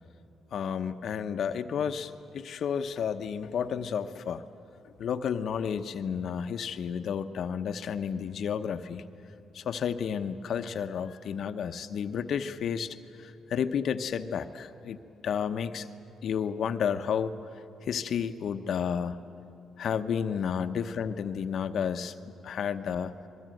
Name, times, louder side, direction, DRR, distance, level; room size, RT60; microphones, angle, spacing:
voice 1, 0.5-4.4 5.0-9.0 9.5-15.9 16.2-17.3 17.8-19.2 19.8-22.2 22.4-23.1, left 7 dB, 65° left, 8 dB, 0.9 m, -31 dB
24.5 x 22.0 x 7.8 m, 2.9 s
cardioid pair, 90°, 0 cm